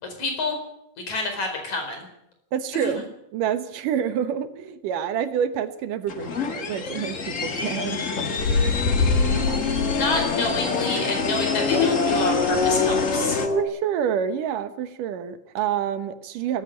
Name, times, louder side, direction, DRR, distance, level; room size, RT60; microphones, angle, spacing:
voice 1, 0.0-0.6 1.1-2.1 2.7-3.0 9.8-13.4, left 3 dB, 60° left, 4 dB, 5.9 m, -28 dB
voice 2, 2.5-3.0 3.3-8.0 8.5-8.6 9.3-9.6 13.5-16.6, right 8 dB, 80° right, 10 dB, 2.8 m, -28 dB
sound 1, 6.1-13.5, left 5 dB, 45° left, 1.0 m, -27 dB
Race car auto racing / Accelerating revving vroom, 8.4-13.6, left 3 dB, 85° left, 5.0 m, -24 dB
18.5 x 14.5 x 9.4 m, 0.82 s
omnidirectional pair, 3.7 m